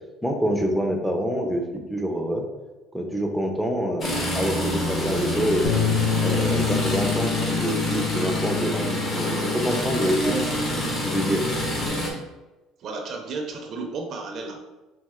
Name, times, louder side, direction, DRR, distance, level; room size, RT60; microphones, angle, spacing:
voice 1, 0.2-2.5 2.9-5.7 6.2-10.4 10.8-11.5, equal, ahead, 3 dB, 0.6 m, -26 dB
sound 1, 4.0-12.1, equal, 35° left, 1.1 m, -27 dB
Bass guitar, 5.6-11.9, left 7 dB, 60° left, 0.7 m, -28 dB
voice 2, 10.2-11.0 12.8-14.6, right 3 dB, 45° right, 3 dB, 0.5 m, -33 dB
4.2 x 2.8 x 3.6 m, 1.1 s
cardioid pair, 135°, 0 cm